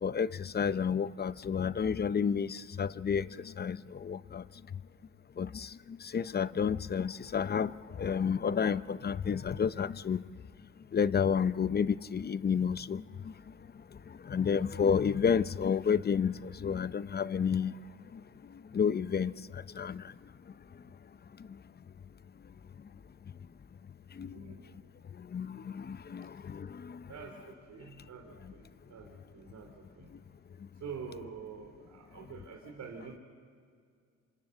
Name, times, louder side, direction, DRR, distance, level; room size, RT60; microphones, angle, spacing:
voice 1, 0.0-3.3 3.6-4.4 5.4-5.7 6.1-7.7 8.0-10.2 10.9-13.0 14.3-17.7 18.7-19.3 19.8-20.0 24.2-24.4 25.3-27.0, left 7 dB, 35° left, 0.6 m, -30 dB
voice 2, 24.3-24.8 27.1-30.1 30.8-33.2, right 6 dB, 70° right, 3.4 m, -46 dB
26.5 x 25.0 x 7.8 m
cardioid pair, 90°, 30 cm